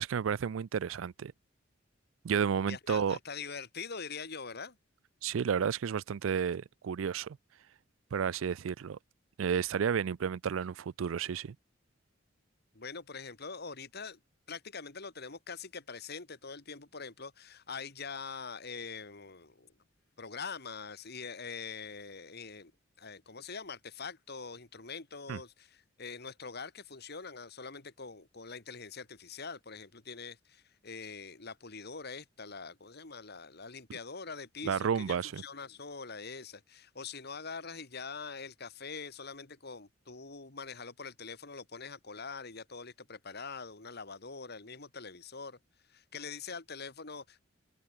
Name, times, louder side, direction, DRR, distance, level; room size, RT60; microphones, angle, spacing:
voice 1, 0.0-1.3 2.2-3.2 5.2-7.4 8.1-9.0 9.4-11.6 25.3-25.4 34.6-35.4, right 7 dB, 90° right, 0.4 m, -31 dB
voice 2, 2.7-4.8 12.7-14.2 14.5-19.7 20.2-22.7 23.0-35.2 35.4-45.6 45.9-47.4, left 5 dB, 55° left, 2.7 m, -44 dB
head